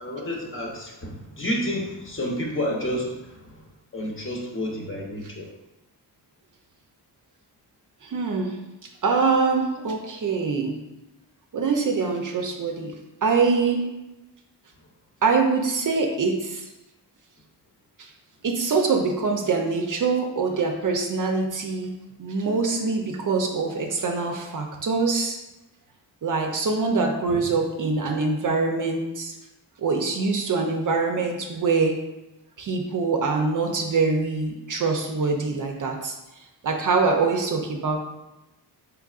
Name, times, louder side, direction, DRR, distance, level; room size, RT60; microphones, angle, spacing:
voice 1, 0.0-3.6 3.9-5.5 27.3-27.4, left 1 dB, 30° left, -2 dB, 0.8 m, -30 dB
voice 2, 8.0-8.6 9.0-10.8 11.5-12.9 13.2-13.9 15.2-16.6 18.0-18.1 18.4-25.4 26.2-29.3 29.8-32.0 32.6-36.2 36.6-38.0, right 4 dB, 50° right, 2 dB, 0.5 m, -24 dB
3.5 x 3.3 x 2.4 m, 0.98 s
cardioid pair, 65°, 42 cm